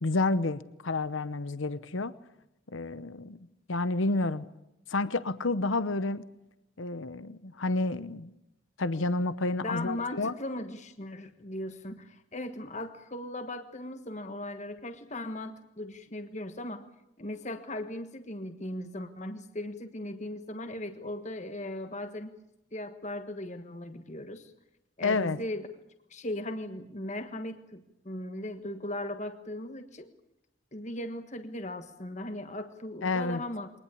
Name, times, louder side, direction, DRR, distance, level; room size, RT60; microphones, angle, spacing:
voice 1, 0.0-2.1 2.7-3.4 3.7-4.5 4.9-6.3 6.8-8.3 8.8-10.3 25.0-25.4 33.0-33.4, left 2 dB, 75° left, 14 dB, 0.9 m, -30 dB
voice 2, 9.6-16.9 17.2-22.3 22.7-24.5 25.0-25.7 26.1-30.1 30.7-33.7, left 1 dB, 35° left, 8 dB, 1.5 m, -38 dB
23.0 x 19.5 x 8.5 m, 0.87 s
head